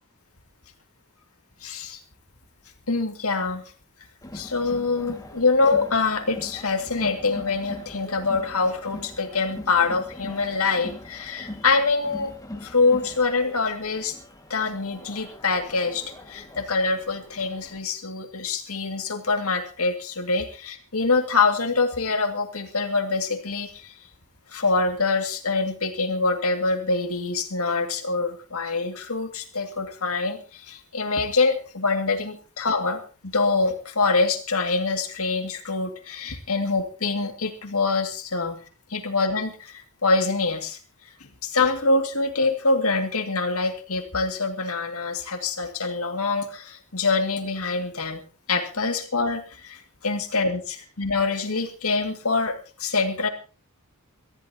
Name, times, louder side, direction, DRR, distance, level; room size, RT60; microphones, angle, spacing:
voice 1, 1.6-2.0 2.9-3.6 4.3-12.3 12.6-14.2 14.5-23.9 24.5-38.6 38.9-40.8 41.4-52.5 52.8-53.3, left 3 dB, 70° left, 5 dB, 2.2 m, -25 dB
Crowd, 4.2-17.8, left 1 dB, 15° left, 2.0 m, -42 dB
23.5 x 15.0 x 2.9 m, 0.34 s
head